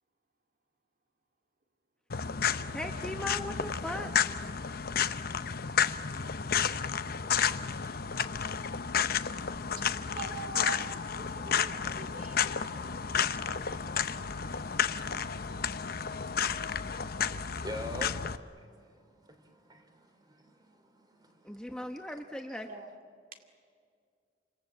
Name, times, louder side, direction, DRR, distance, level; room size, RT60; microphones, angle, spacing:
Walking in dirt (Ambient omni), 2.1-18.4, left 7 dB, 55° left, 0.8 m, -32 dB
voice 1, 2.7-4.3 21.4-22.7, left 1 dB, 5° left, 1.0 m, -38 dB
voice 2, 10.2-10.9 11.6-12.4 13.0-13.2 14.0-14.1 22.6-22.9, right 3 dB, 50° right, 2.4 m, -41 dB
voice 3, 13.8-14.1 14.4-14.7 15.0-15.4 16.0-22.2 22.5-22.6, left 1 dB, 25° right, 3.5 m, -48 dB
29.0 x 26.5 x 7.7 m
head